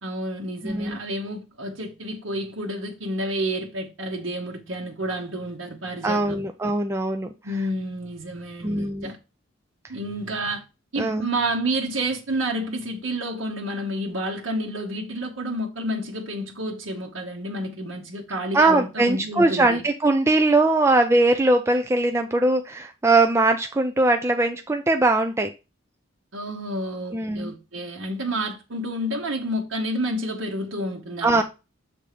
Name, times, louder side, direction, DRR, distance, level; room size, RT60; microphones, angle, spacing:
voice 1, 0.0-6.4 7.4-9.2 9.9-10.6 10.9-19.8 26.3-31.4, right 1 dB, 80° right, 1.1 m, -30 dB
voice 2, 0.6-1.0 6.0-7.3 8.6-9.1 11.0-11.3 18.5-25.5 27.1-27.5 31.2-31.4, right 2 dB, 15° right, 0.4 m, -21 dB
6.9 x 3.6 x 4.9 m
head